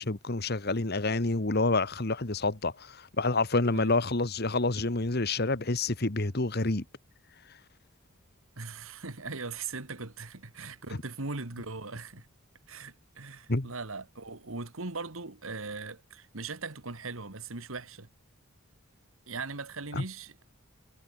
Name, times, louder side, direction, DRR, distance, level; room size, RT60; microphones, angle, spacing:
voice 1, 0.0-6.8 13.5-13.7 19.9-20.0, left 2 dB, 50° left, 1.5 m, -28 dB
voice 2, 8.6-12.3 12.7-18.1 19.3-20.4, right 3 dB, 75° right, 2.1 m, -39 dB
head